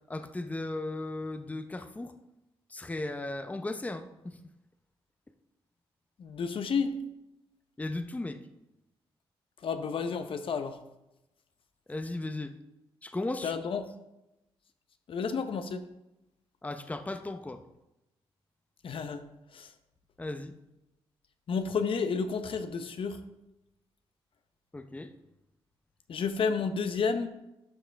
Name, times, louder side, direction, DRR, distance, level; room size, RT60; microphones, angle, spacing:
voice 1, 0.1-2.1 2.7-4.4 7.8-8.4 11.9-12.5 13.0-13.5 16.6-17.6 20.2-20.5 24.7-25.1, left 2 dB, 15° left, 8 dB, 0.7 m, -36 dB
voice 2, 6.2-7.0 9.6-10.8 13.4-13.9 15.1-15.8 18.8-19.2 19.5-19.7 21.5-23.2 26.1-27.3, left 5 dB, 60° left, 9 dB, 0.8 m, -31 dB
12.0 x 5.1 x 3.4 m, 0.92 s
cardioid pair, 70°, 10 cm